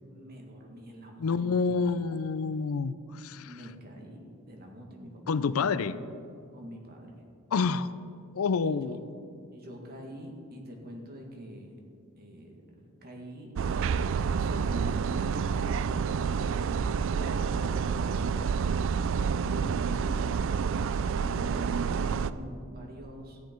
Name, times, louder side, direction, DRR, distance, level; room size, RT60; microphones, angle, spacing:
voice 1, 0.1-1.9 3.4-5.9 6.5-7.3 8.6-9.0 9.5-11.8 12.2-13.6 14.3-16.1 17.0-19.1 19.4-20.8 21.1-23.4, equal, 45° right, 1 dB, 1.8 m, -45 dB
voice 2, 1.2-3.5 5.3-5.9 7.5-7.9 8.3-9.0, left 5 dB, 75° left, 15 dB, 0.4 m, -28 dB
sound 1, 13.6-22.3, right 6 dB, 60° right, 0.3 m, -28 dB
14.5 x 9.3 x 4.5 m, 2.3 s
head